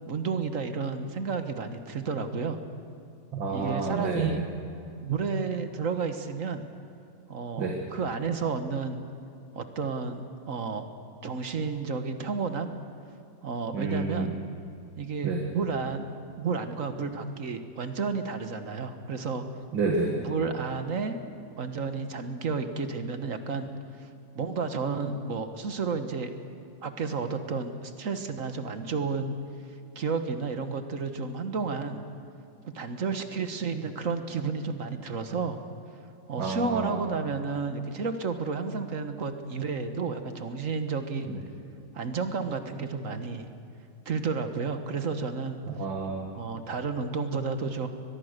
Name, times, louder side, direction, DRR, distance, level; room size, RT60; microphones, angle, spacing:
voice 1, 0.1-2.6 3.5-4.4 5.0-6.6 7.3-9.0 9.5-10.8 11.2-12.7 13.4-14.4 15.0-16.1 16.4-19.4 20.2-21.2 21.6-23.7 24.0-24.1 24.3-26.3 26.8-29.4 29.9-32.0 32.6-35.6 36.3-41.4 41.9-43.5 44.0-45.6 46.3-47.9, right 4 dB, 45° right, 8 dB, 1.5 m, -31 dB
voice 2, 3.3-4.3 7.6-7.8 13.7-14.3 15.2-15.4 19.7-20.1 36.4-37.0 41.3-41.4 45.7-46.3, right 4 dB, 85° right, 0 dB, 2.7 m, -29 dB
23.5 x 21.0 x 6.7 m, 2.5 s
omnidirectional pair, 2.0 m